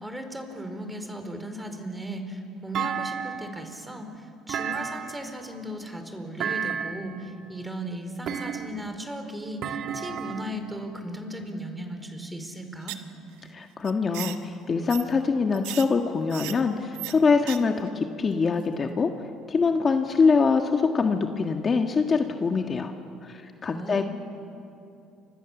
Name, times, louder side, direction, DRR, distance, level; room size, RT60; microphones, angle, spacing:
voice 1, 0.0-13.0 23.6-24.0, equal, 10° right, 6 dB, 4.5 m, -36 dB
Thump thud, 2.7-3.7 4.5-5.4 6.4-7.2 8.3-9.0 9.6-10.6, right 7 dB, 55° right, 2.4 m, -32 dB
sound 1, 12.8-13.1 13.4-13.5 13.8-14.4 14.9-15.0 15.5-15.8 16.3-16.6 16.9-17.1 17.4-17.6 17.9-18.0, right 17 dB, 90° right, 1.3 m, -35 dB
voice 2, 13.5-19.1 19.5-22.9 23.2-24.0, left 4 dB, 35° left, 4 dB, 1.7 m, -24 dB
29.5 x 26.0 x 7.3 m, 2.7 s
supercardioid pair, 90°, 0 cm